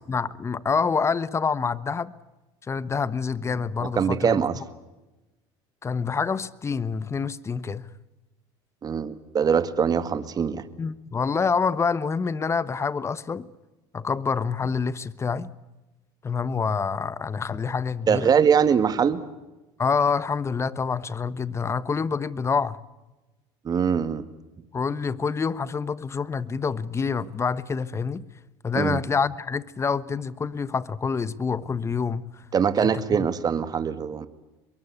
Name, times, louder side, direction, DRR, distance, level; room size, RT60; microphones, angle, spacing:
voice 1, 0.1-2.1 2.7-4.4 5.8-7.8 10.8-13.5 13.9-15.5 16.2-18.3 19.8-22.8 24.7-28.3 28.6-32.2 32.8-33.3, left 5 dB, 25° left, 1.2 m, -27 dB
voice 2, 3.8-4.6 8.8-10.6 18.1-19.2 23.6-24.3 28.7-29.0 32.5-34.3, right 7 dB, 35° right, 2.0 m, -22 dB
24.0 x 22.5 x 8.3 m
supercardioid pair, 100°, 12 cm